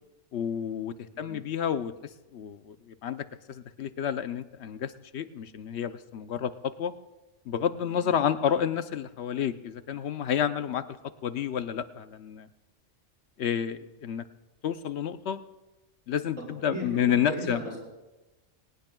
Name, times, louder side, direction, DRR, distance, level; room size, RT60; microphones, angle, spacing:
voice 1, 0.3-1.9 2.3-6.9 7.5-10.8 11.2-12.5 13.4-14.2 14.6-15.4 16.1-17.6, left 8 dB, 65° left, 12 dB, 0.9 m, -30 dB
voice 2, 16.4-17.8, right 1 dB, 90° right, -4 dB, 5.8 m, -37 dB
23.0 x 19.0 x 2.3 m, 1.0 s
omnidirectional pair, 1.3 m